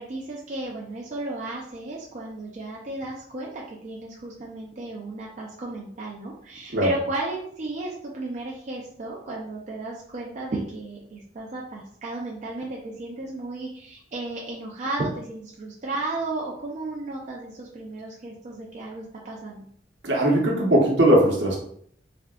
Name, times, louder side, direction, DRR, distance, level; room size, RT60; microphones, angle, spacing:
voice 1, 0.0-19.7, right 2 dB, 40° right, -3 dB, 0.4 m, -33 dB
voice 2, 20.0-21.6, right 1 dB, 65° right, -1 dB, 0.9 m, -19 dB
3.4 x 2.6 x 2.3 m, 0.64 s
head